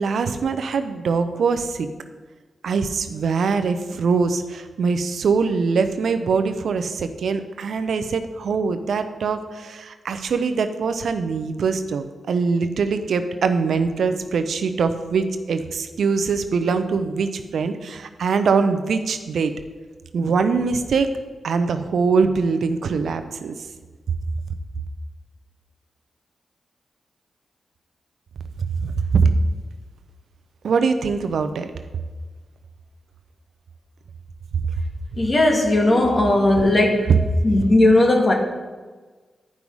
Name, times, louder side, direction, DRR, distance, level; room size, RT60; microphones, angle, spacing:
voice 1, 0.0-1.9 2.6-19.5 20.1-21.1 21.4-23.6 29.1-29.3 30.6-31.7, right 5 dB, 80° right, 9 dB, 0.6 m, -22 dB
voice 2, 35.2-37.1 37.4-38.3, left 1 dB, 45° left, 2 dB, 1.8 m, -17 dB
10.5 x 5.4 x 4.7 m, 1.4 s
cardioid pair, 55°, 0 cm